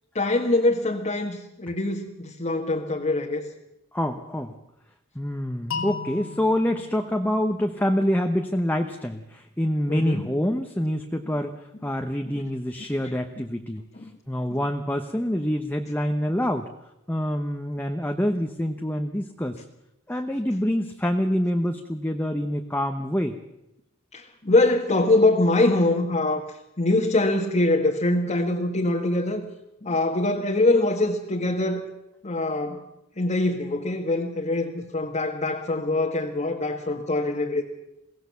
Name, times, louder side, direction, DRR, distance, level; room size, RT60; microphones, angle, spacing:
voice 1, 0.1-3.4 5.7-5.8 9.9-10.3 13.0-13.2 13.9-14.1 14.5-14.6 24.1-29.4 29.8-31.8 32.2-32.8 33.2-37.6, left 2 dB, 35° left, 1 dB, 1.5 m, -23 dB
voice 2, 3.9-4.5 5.1-11.5 11.8-13.8 14.3-16.7 17.1-19.6 20.1-23.4, equal, 10° left, 4 dB, 1.0 m, -26 dB
sound 1, 5.7-8.6, left 5 dB, 80° left, 2.5 m, -37 dB
22.5 x 17.5 x 7.0 m, 0.89 s
head